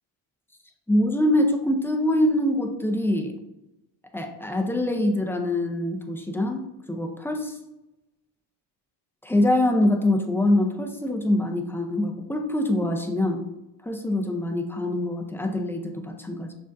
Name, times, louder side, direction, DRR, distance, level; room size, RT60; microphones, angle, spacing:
voice 1, 0.9-3.3 4.1-7.5 9.2-13.4 13.8-16.5, left 1 dB, 5° left, 3 dB, 0.5 m, -24 dB
6.3 x 2.5 x 2.6 m, 0.96 s
cardioid pair, 95°, 47 cm